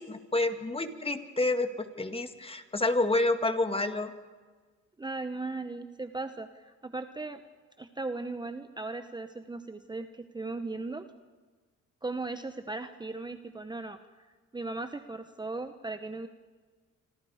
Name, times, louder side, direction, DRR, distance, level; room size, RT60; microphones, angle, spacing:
voice 1, 0.0-4.1, left 2 dB, 20° left, 7 dB, 2.0 m, -29 dB
voice 2, 5.0-7.4 7.8-11.1 12.0-14.0 14.5-16.3, right 3 dB, 15° right, 9 dB, 1.0 m, -37 dB
27.0 x 26.0 x 5.0 m, 1.4 s
cardioid pair, 90°, 30 cm